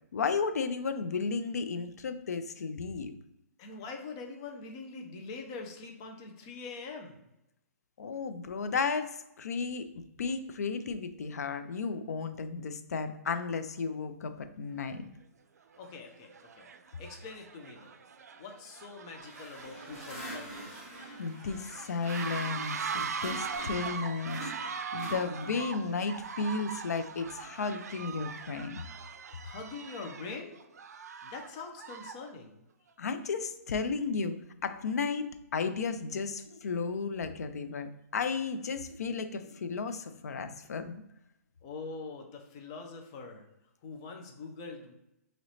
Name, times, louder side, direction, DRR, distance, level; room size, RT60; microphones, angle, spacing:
voice 1, 0.1-3.1 8.0-9.9 10.2-15.1 21.2-24.4 24.9-28.8 33.0-41.0, left 4 dB, 75° left, 10 dB, 0.5 m, -34 dB
voice 2, 3.6-7.3 15.8-16.7 17.0-18.0 18.4-20.9 29.4-30.6 31.2-32.6 41.6-43.5 43.8-45.0, left 4 dB, 20° left, 2 dB, 0.4 m, -44 dB
sound 1, 14.9-15.0 15.7-16.0 16.3-32.3, right 6 dB, 75° right, 0.4 m, -41 dB
sound 2, 19.2-23.9 24.2-25.7, right 1 dB, ahead, 1.4 m, -46 dB
3.0 x 3.0 x 4.0 m, 0.87 s
hypercardioid pair, 175°, 9 cm